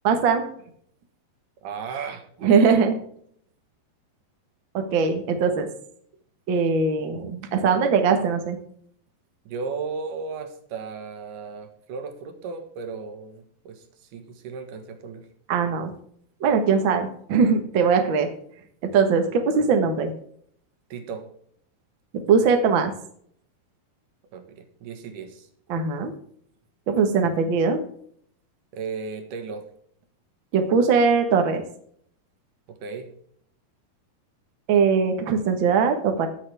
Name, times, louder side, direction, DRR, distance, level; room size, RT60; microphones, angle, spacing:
voice 1, 0.0-0.4 2.4-3.0 4.7-5.7 6.5-8.6 15.5-15.9 16.4-18.3 18.8-20.1 22.3-22.9 25.7-26.1 26.9-27.8 30.5-31.6 34.7-36.3, right 5 dB, 85° right, 5 dB, 1.0 m, -21 dB
voice 2, 1.6-2.2 9.5-13.8 14.1-15.3 20.9-21.3 24.3-25.5 28.7-29.7 32.7-33.1, right 5 dB, 65° right, 5 dB, 2.6 m, -35 dB
19.0 x 6.6 x 3.5 m, 0.64 s
omnidirectional pair, 4.4 m